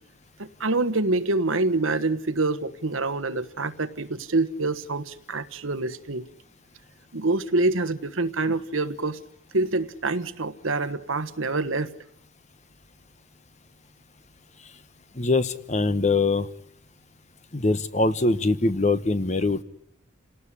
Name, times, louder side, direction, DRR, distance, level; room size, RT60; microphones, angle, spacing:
voice 1, 0.4-6.2 7.1-9.2 9.5-11.9, right 2 dB, 80° right, 11 dB, 1.3 m, -26 dB
voice 2, 15.1-16.5 17.5-19.6, left 3 dB, 35° left, 12 dB, 1.0 m, -23 dB
28.5 x 18.5 x 10.0 m, 0.81 s
head